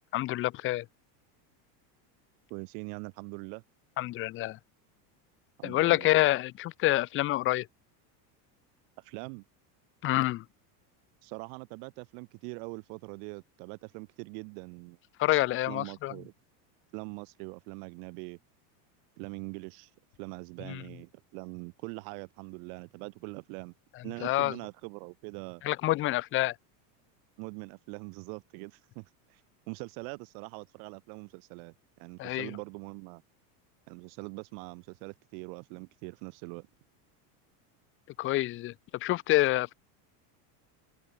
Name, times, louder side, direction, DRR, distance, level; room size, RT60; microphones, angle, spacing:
voice 1, 0.1-0.8 4.0-4.6 5.6-7.7 10.0-10.4 15.2-16.1 20.7-20.8 24.2-24.6 25.6-26.5 32.2-32.5 38.2-38.7 39.0-39.8, left 16 dB, 25° left, 0.4 m, -27 dB
voice 2, 2.5-3.6 5.6-6.1 9.0-9.4 11.2-15.0 15.7-16.3 16.9-18.4 19.2-19.9 20.2-23.7 24.0-25.6 27.4-29.4 29.7-33.2 33.9-36.7, right 40 dB or more, 65° right, 2.7 m, -43 dB
open air
supercardioid pair, 130°, 49 cm